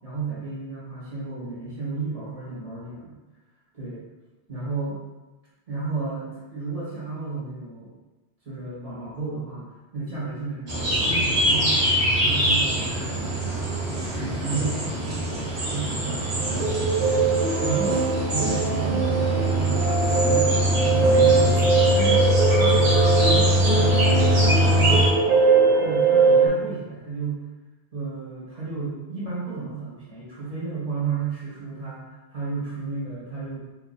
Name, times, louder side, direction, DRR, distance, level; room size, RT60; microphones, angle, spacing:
voice 1, 0.0-3.1 3.7-4.0 4.5-5.0 5.7-7.9 8.4-13.5 14.1-14.9 15.7-17.3 17.6-25.2 25.8-27.4 27.9-33.6, right 4 dB, 35° right, -9 dB, 1.4 m, -33 dB
sound 1, 10.7-25.1, equal, 85° right, 1.3 m, -23 dB
sound 2, 16.4-26.5, right 4 dB, 50° right, 0.5 m, -21 dB
3.1 x 2.5 x 4.1 m, 1.1 s
omnidirectional pair, 1.1 m